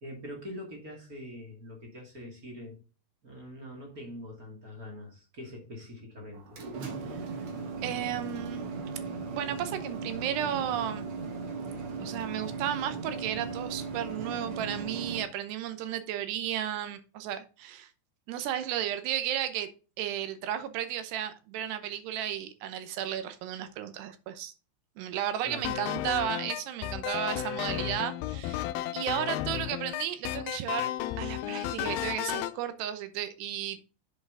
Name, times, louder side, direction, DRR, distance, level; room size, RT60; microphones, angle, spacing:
voice 1, 0.0-2.8 3.2-6.6 25.4-25.7, left 1 dB, 30° right, 2.0 m, -43 dB
sound 1, 6.3-15.2, right 4 dB, 55° right, 1.5 m, -37 dB
voice 2, 7.8-8.7 9.3-11.1 12.0-17.9 18.3-19.7 20.0-24.5 25.0-28.6 28.9-30.9 31.2-33.8, right 10 dB, 80° right, 3.0 m, -34 dB
sound 2, 25.6-32.6, left 12 dB, 80° left, 2.2 m, -33 dB
7.7 x 6.9 x 3.7 m
omnidirectional pair, 4.8 m